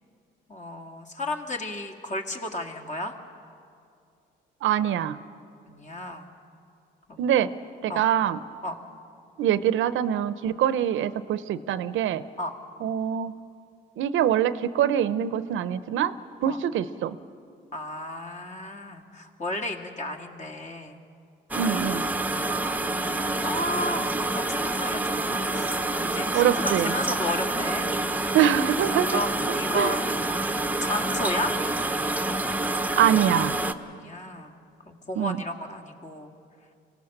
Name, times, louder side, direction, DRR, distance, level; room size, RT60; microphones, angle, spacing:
voice 1, 0.5-3.1 5.7-6.3 7.1-7.3 7.9-8.1 8.6-8.8 12.4-12.5 16.5-16.6 17.7-21.0 23.4-27.9 29.0-30.2 30.8-31.5 33.9-34.6 34.9-36.3, left 1 dB, 35° left, 4 dB, 2.0 m, -33 dB
voice 2, 4.6-5.2 7.2-7.5 7.8-8.4 9.4-12.2 12.8-13.3 14.0-16.1 16.4-17.2 21.6-22.0 26.3-26.9 28.3-29.2 29.7-30.0 33.0-33.6 35.2-35.4, right 10 dB, 80° right, 14 dB, 0.7 m, -24 dB
sound 1, 21.5-33.7, right 2 dB, 10° right, 0.8 m, -27 dB
25.0 x 17.0 x 6.6 m, 2.4 s
cardioid pair, 90°, 20 cm